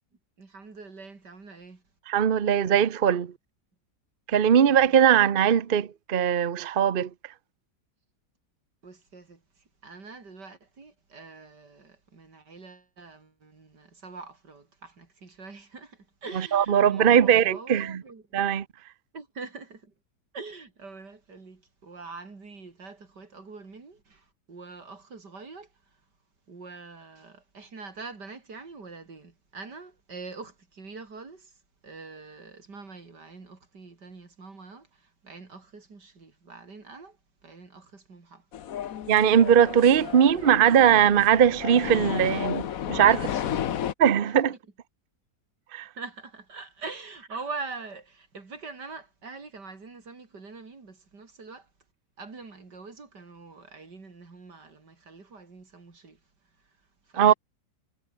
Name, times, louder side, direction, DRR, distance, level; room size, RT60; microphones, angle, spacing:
voice 1, 0.4-1.8 4.5-4.9 8.8-9.4 9.8-18.4 19.1-19.9 20.3-25.7 26.5-31.5 31.8-37.2 37.4-38.4 39.8-40.5 43.0-43.7 44.2-44.6 46.0-51.7 52.2-56.2 57.1-57.3, right 4 dB, 85° right, 4.2 m, -44 dB
voice 2, 2.1-3.3 4.3-7.1 16.3-18.0 18.3-18.6 39.1-43.2 44.0-44.5 45.7-45.9 57.2-57.3, right 9 dB, 40° right, 0.8 m, -20 dB
sound 1, 38.5-43.9, left 10 dB, 60° left, 1.3 m, -33 dB
omnidirectional pair, 1.8 m